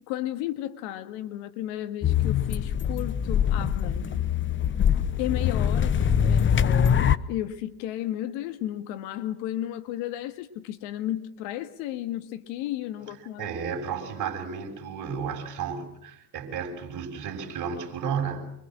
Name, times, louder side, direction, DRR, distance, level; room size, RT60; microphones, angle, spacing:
voice 1, 0.1-4.2 5.2-13.6, left 13 dB, 70° left, 2.2 m, -33 dB
sound 1, 2.0-7.2, left 8 dB, 25° left, 0.9 m, -23 dB
voice 2, 13.4-18.5, right 6 dB, 40° right, 7.2 m, -33 dB
26.0 x 24.0 x 6.4 m
supercardioid pair, 110°, 46 cm